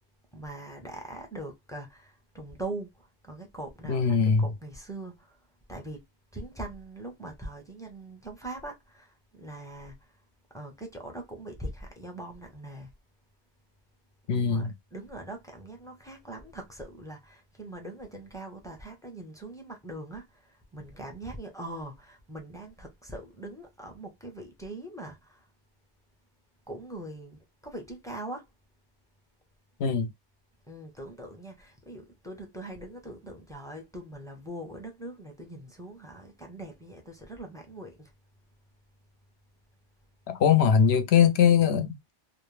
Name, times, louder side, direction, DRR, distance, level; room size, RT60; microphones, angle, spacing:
voice 1, 0.3-5.4 5.7-6.0 6.3-10.0 10.5-12.9 14.3-25.4 26.7-28.5 30.7-38.1, right 1 dB, 5° left, 0.6 m, -42 dB
voice 2, 3.9-4.5 14.3-14.7 29.8-30.1 40.3-42.1, left 7 dB, 75° left, 0.8 m, -22 dB
2.4 x 2.0 x 3.1 m
omnidirectional pair, 1.1 m